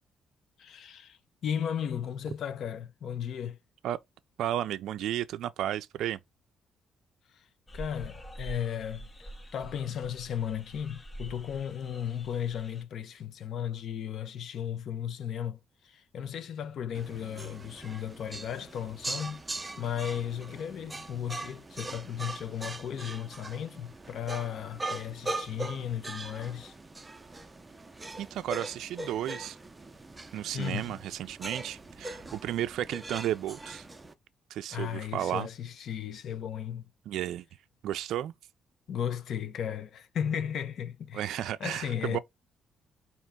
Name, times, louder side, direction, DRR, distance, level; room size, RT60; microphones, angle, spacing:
voice 1, 0.6-3.6 7.3-26.8 30.5-31.0 34.7-36.9 38.9-42.2, left 9 dB, 65° left, 0.7 m, -35 dB
voice 2, 4.4-6.2 28.2-29.6 30.3-33.8 34.5-35.5 37.1-37.5 37.8-38.3 41.1-42.2, right 12 dB, 80° right, 0.3 m, -33 dB
sound 1, 7.7-12.8, right 1 dB, 25° left, 0.7 m, -46 dB
sound 2, 16.9-34.1, right 2 dB, 20° right, 0.6 m, -41 dB
4.4 x 2.9 x 3.5 m
cardioid pair, 90°, 0 cm